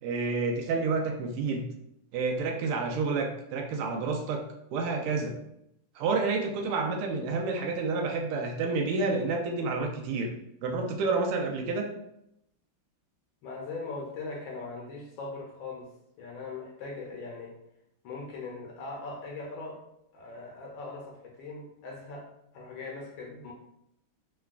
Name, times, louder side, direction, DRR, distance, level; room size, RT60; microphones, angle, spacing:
voice 1, 0.0-1.6 2.1-4.4 4.7-5.4 6.0-10.3 10.6-11.9, right 4 dB, 90° right, 2 dB, 1.5 m, -29 dB
voice 2, 13.4-15.9 16.2-17.5 18.0-19.8 20.1-23.5, left 3 dB, 75° left, -1 dB, 1.2 m, -40 dB
3.9 x 2.2 x 2.4 m, 0.80 s
omnidirectional pair, 2.4 m